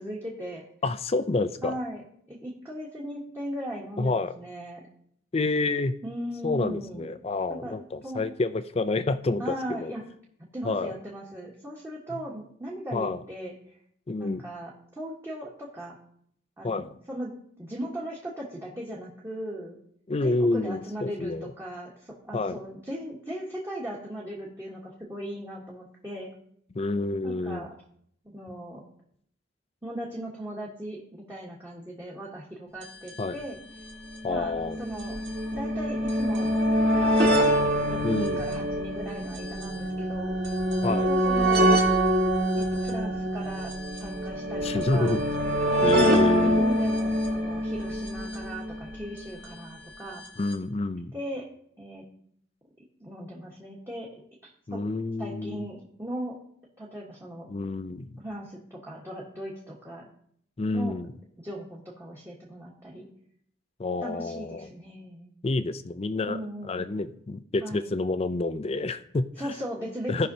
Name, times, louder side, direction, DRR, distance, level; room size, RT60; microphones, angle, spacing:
voice 1, 0.0-0.6 1.6-2.0 2.3-4.8 6.0-7.1 7.5-7.8 8.0-8.2 9.4-10.0 10.5-13.5 14.2-16.0 16.6-19.8 20.2-26.3 27.2-27.7 28.2-28.8 29.8-33.6 34.3-34.5 34.8-35.2 35.5-36.5 37.9-40.3 40.8-41.7 42.6-45.2 45.7-50.2 51.1-51.5 51.8-52.0 53.0-54.1 54.4-54.8 55.2-56.4 56.8-57.5 58.2-60.1 60.7-60.9 61.4-63.1 64.0-65.4 66.3-66.9 67.6-67.9 69.4-70.3, right 1 dB, 15° right, -5 dB, 1.3 m, -38 dB
voice 2, 0.8-1.8 4.0-4.3 5.3-6.0 6.4-9.5 9.8-9.9 10.6-10.9 12.9-13.2 14.1-14.5 16.6-16.9 20.1-21.5 22.3-22.6 26.7-27.7 33.2-33.4 34.2-34.8 38.0-38.4 40.8-41.1 44.6-45.2 45.8-46.7 50.4-51.1 54.7-55.7 57.5-58.1 60.6-61.1 63.8-64.7 65.4-69.3 70.1-70.3, left 3 dB, 30° left, 12 dB, 0.4 m, -28 dB
sound 1, 32.8-32.9 33.1-33.2 34.0-49.3 50.3-50.4 50.5-50.6, equal, 50° right, 1.7 m, -25 dB
16.5 x 5.7 x 2.7 m, 0.67 s
head